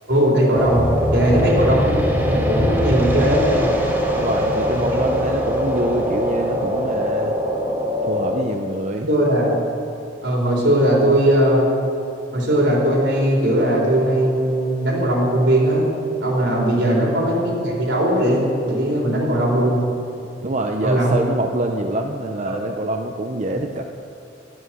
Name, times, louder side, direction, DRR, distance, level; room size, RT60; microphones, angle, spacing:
voice 1, 0.1-0.8 1.1-3.7 4.8-4.9 9.1-9.6 10.2-11.7 12.3-15.9 16.2-19.8 20.8-21.2, right 1 dB, 80° right, -3 dB, 4.2 m, -19 dB
sound 1, 0.6-8.4, equal, 10° right, 2.0 m, -21 dB
voice 2, 4.1-7.4 8.0-9.1 16.7-17.1 20.4-23.8, right 2 dB, 40° right, 4 dB, 0.6 m, -25 dB
12.0 x 11.0 x 7.6 m, 2.7 s
head